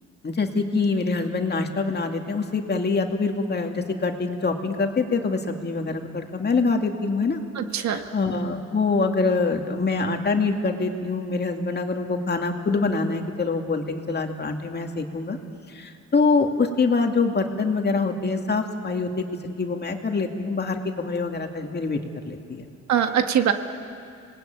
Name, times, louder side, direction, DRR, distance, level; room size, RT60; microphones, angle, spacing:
voice 1, 0.2-7.4 7.8-15.4 15.7-22.7, left 4 dB, 35° left, 4 dB, 2.4 m, -25 dB
voice 2, 7.6-8.0 22.9-23.5, right 9 dB, 65° right, 6 dB, 1.7 m, -22 dB
27.0 x 19.5 x 9.2 m, 2.5 s
cardioid pair, 90°, 30 cm